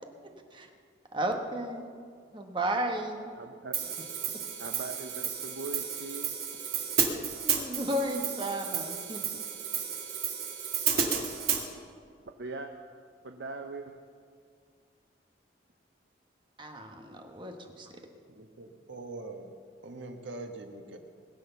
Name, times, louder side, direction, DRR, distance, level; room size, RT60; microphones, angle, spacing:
voice 1, 1.1-1.9 2.3-3.3 7.5-9.4 16.6-17.9, right 1 dB, 25° right, 4 dB, 1.3 m, -33 dB
voice 2, 3.4-3.9 4.6-6.4 12.3-12.7 13.2-14.0, right 3 dB, 70° right, 4 dB, 0.8 m, -41 dB
Hi-hat, 3.7-11.6, right 7 dB, 55° right, 1.9 m, -32 dB
voice 3, 18.3-19.5 19.8-21.0, right 2 dB, 90° right, 5 dB, 1.4 m, -43 dB
20.5 x 8.1 x 6.9 m, 2.2 s
head